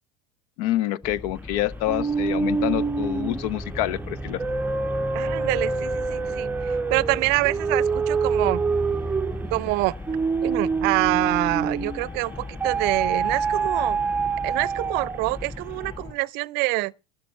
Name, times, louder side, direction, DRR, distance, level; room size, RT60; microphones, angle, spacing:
voice 1, 0.6-4.4, left 13 dB, 60° left, 0.6 m, -27 dB
sound 1, 1.0-16.1, left 3 dB, 20° left, 6.2 m, -39 dB
sound 2, 1.9-12.1 12.6-15.3, right 4 dB, 10° right, 0.6 m, -26 dB
voice 2, 5.1-8.6 9.5-9.9 10.4-14.0 14.4-16.9, right 23 dB, 55° right, 0.6 m, -26 dB
13.0 x 8.9 x 5.5 m
hypercardioid pair, 75°, 20 cm